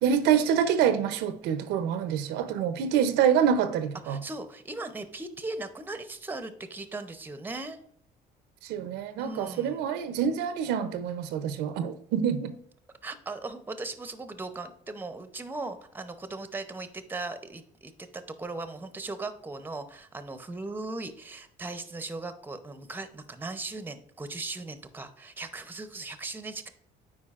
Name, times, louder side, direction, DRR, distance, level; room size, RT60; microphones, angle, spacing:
voice 1, 0.0-4.2 8.6-12.5, right 8 dB, 90° right, 0.6 m, -26 dB
voice 2, 4.0-7.8 9.2-9.8 13.0-26.7, right 3 dB, 10° right, 0.6 m, -38 dB
8.6 x 4.7 x 2.4 m
cardioid pair, 110°, 17 cm